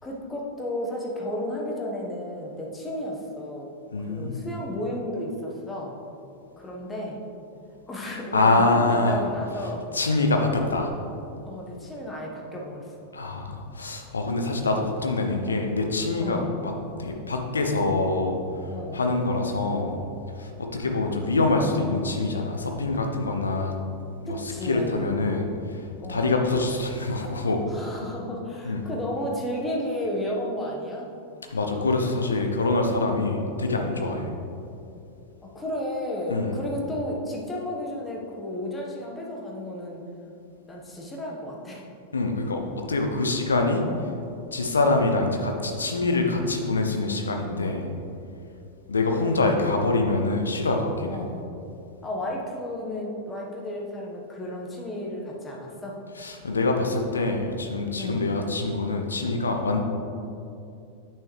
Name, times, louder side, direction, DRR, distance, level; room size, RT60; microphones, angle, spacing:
voice 1, 0.0-3.7 4.1-5.9 6.6-7.2 7.9-9.8 11.4-13.1 15.3-15.6 16.2-16.6 18.7-19.0 24.3-25.2 26.0-26.4 27.7-31.1 33.9-34.3 35.5-40.0 40.7-41.8 43.9-44.1 49.1-49.6 51.1-51.4 52.0-56.0 58.0-58.3, left 1 dB, 15° left, -2 dB, 1.3 m, -33 dB
voice 2, 3.9-4.5 8.3-9.2 9.9-10.9 13.1-16.7 17.0-18.4 18.9-20.0 20.4-23.7 24.2-24.4 24.6-25.8 26.1-27.6 28.6-28.9 31.5-34.3 36.3-36.6 42.1-43.9 44.5-47.9 48.9-51.2 56.2-59.8, left 2 dB, 75° left, 3 dB, 0.8 m, -25 dB
8.6 x 6.2 x 3.2 m, 2.6 s
figure-of-eight pair, 90°, 0 cm